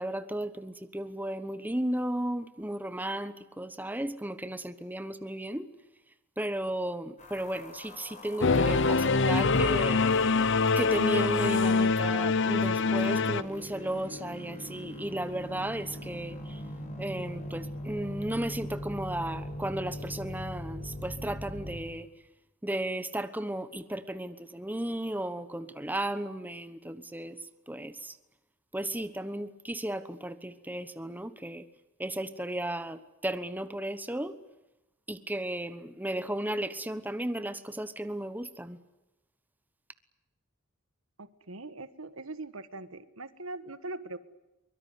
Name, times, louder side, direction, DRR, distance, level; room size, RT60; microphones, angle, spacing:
voice 1, 0.0-5.7 6.4-10.1 10.8-16.6 17.0-22.1 22.6-27.4 27.7-28.2 28.7-31.6 32.0-34.4 35.1-38.8, right 1 dB, 10° right, 12 dB, 1.1 m, -34 dB
sound 1, 7.2-21.8, left 1 dB, 35° left, 6.4 m, -41 dB
Singing / Musical instrument, 8.4-13.4, left 4 dB, 60° left, 0.9 m, -24 dB
voice 2, 41.2-44.2, right 2 dB, 80° right, 12 dB, 1.5 m, -41 dB
23.5 x 23.0 x 9.7 m, 0.96 s
head